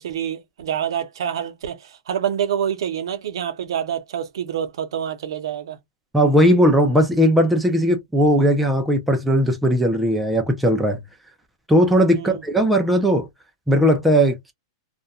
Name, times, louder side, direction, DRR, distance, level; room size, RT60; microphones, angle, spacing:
voice 1, 0.0-5.8 12.1-12.4, right 9 dB, 60° right, 0.6 m, -27 dB
voice 2, 6.1-11.0 11.7-13.3 13.7-14.5, equal, ahead, 0.3 m, -18 dB
2.3 x 2.1 x 2.7 m
supercardioid pair, 180°, 3 cm